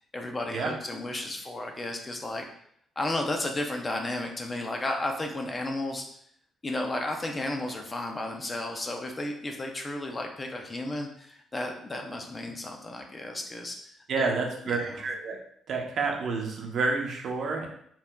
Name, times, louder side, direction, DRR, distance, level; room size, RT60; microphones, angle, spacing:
voice 1, 0.1-2.5 3.0-6.1 6.6-14.4 14.6-15.0, left 1 dB, 20° left, 3 dB, 0.5 m, -33 dB
voice 2, 14.1-15.4 15.7-17.7, right 4 dB, 55° right, 1 dB, 0.8 m, -29 dB
4.5 x 3.6 x 2.2 m, 0.66 s
cardioid pair, 150°, 0 cm